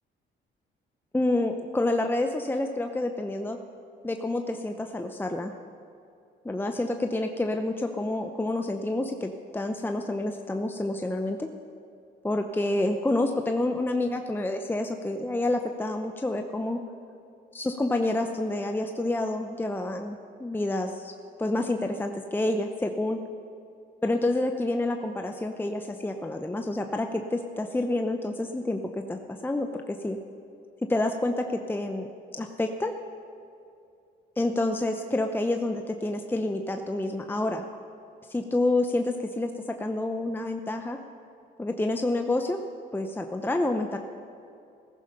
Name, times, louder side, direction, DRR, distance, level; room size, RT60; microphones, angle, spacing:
voice 1, 1.1-3.6 4.0-5.5 6.4-11.5 12.2-16.8 17.5-21.1 21.4-23.2 24.0-30.2 30.9-32.1 32.3-32.9 34.4-37.6 38.3-41.0 41.6-42.6 42.9-44.0, left 2 dB, 10° left, 5 dB, 0.8 m, -28 dB
15.5 x 14.5 x 5.6 m, 2.5 s
cardioid pair, 90°, 20 cm